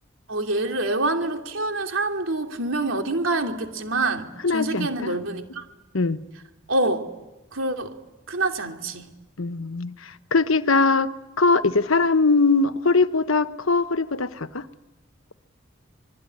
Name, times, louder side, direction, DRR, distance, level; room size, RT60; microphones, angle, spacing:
voice 1, 0.3-5.7 6.7-7.1 7.5-7.9 8.3-9.1, right 2 dB, 80° right, 2.9 m, -26 dB
voice 2, 4.4-5.1 5.9-6.2 9.4-14.7, left 3 dB, 90° left, 1.1 m, -21 dB
26.0 x 21.5 x 9.9 m
head